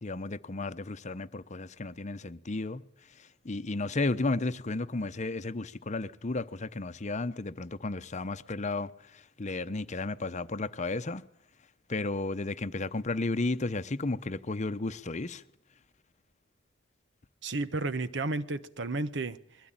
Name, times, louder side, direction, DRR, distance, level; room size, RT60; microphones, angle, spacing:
voice 1, 0.0-2.8 3.2-11.2 11.9-15.4, left 2 dB, 40° left, 0.8 m, -33 dB
voice 2, 17.4-19.7, right 2 dB, 65° right, 1.0 m, -33 dB
22.0 x 16.5 x 8.9 m
head